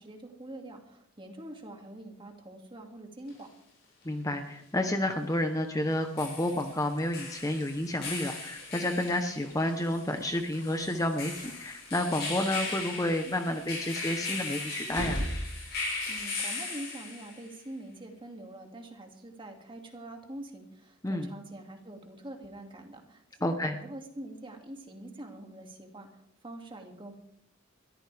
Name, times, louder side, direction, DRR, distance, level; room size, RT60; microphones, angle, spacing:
voice 1, 0.0-3.5 16.1-27.1, right 1 dB, 25° right, 2 dB, 2.3 m, -45 dB
sound 1, 3.3-3.4 5.9-17.5, left 3 dB, 55° left, 7.4 m, -38 dB
voice 2, 4.0-15.2 21.0-21.3 23.4-23.8, left 1 dB, 15° left, 6 dB, 0.9 m, -30 dB
Walk footsteps / Slam, 6.5-12.2 12.7-13.0 13.3-16.3, right 1 dB, 60° right, 4.4 m, -41 dB
21.5 x 14.0 x 3.5 m, 0.75 s
head